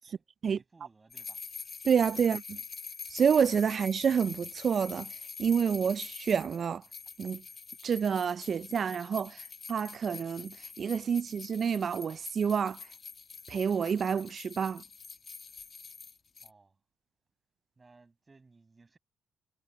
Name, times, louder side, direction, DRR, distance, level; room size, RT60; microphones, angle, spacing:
voice 1, 0.0-1.4 2.2-2.3 16.4-16.8 17.8-19.0, right 3 dB, 25° right, 7.2 m, -60 dB
sound 1, 1.1-16.5, left 5 dB, 40° left, 2.2 m, -45 dB
voice 2, 1.8-2.6 3.1-5.1 5.4-6.8 7.2-7.4 7.8-12.8 13.5-14.8, right 7 dB, 50° right, 0.3 m, -28 dB
cardioid pair, 90°, 0 cm